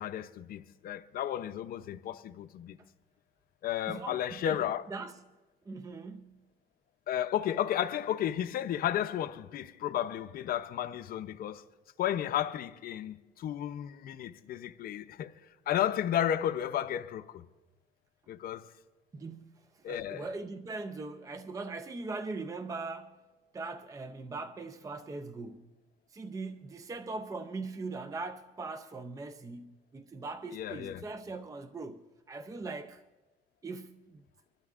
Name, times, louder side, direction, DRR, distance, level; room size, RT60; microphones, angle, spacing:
voice 1, 0.0-2.8 3.6-4.8 7.1-11.6 12.0-15.3 15.7-17.5 18.3-18.7 19.8-20.3 30.5-31.0, left 11 dB, 60° left, 0.6 m, -33 dB
voice 2, 3.9-4.6 4.9-5.1 5.7-6.4 19.1-23.2 23.5-25.7 26.1-33.0 33.6-34.2, right 3 dB, 20° right, 0.5 m, -41 dB
25.5 x 12.0 x 2.5 m
cardioid pair, 110°, 17 cm